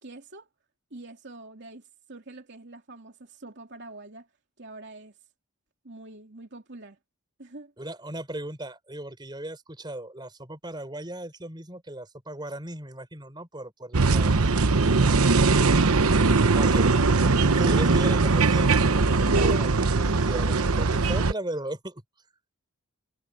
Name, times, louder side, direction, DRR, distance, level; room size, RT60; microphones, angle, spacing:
voice 1, 0.0-0.5 0.9-4.3 4.6-5.2 5.8-7.0 7.4-7.7 15.6-15.9 16.3-16.5 17.7-17.9, right 2 dB, 55° right, 3.1 m, -44 dB
voice 2, 7.8-14.3 16.5-16.9 17.5-22.0, right 1 dB, 20° right, 4.5 m, -37 dB
sound 1, 13.9-21.3, right 3 dB, 85° right, 1.0 m, -21 dB
head